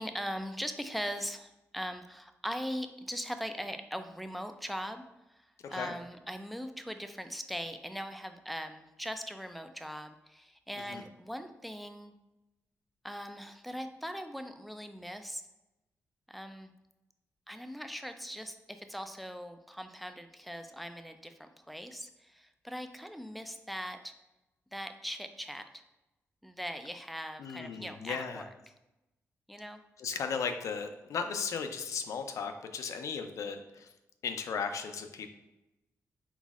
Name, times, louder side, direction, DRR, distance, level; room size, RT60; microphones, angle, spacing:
voice 1, 0.0-5.0 5.3-12.1 13.0-15.4 16.3-16.7 17.5-24.1 24.7-25.8 26.4-28.5 29.5-29.8, equal, ahead, 8 dB, 0.4 m, -40 dB
voice 2, 5.6-5.9 10.9-11.0 27.4-28.4 30.0-33.9 34.2-35.3, left 6 dB, 70° left, 6 dB, 0.4 m, -36 dB
4.0 x 4.0 x 2.4 m, 0.96 s
cardioid pair, 90°, 6 cm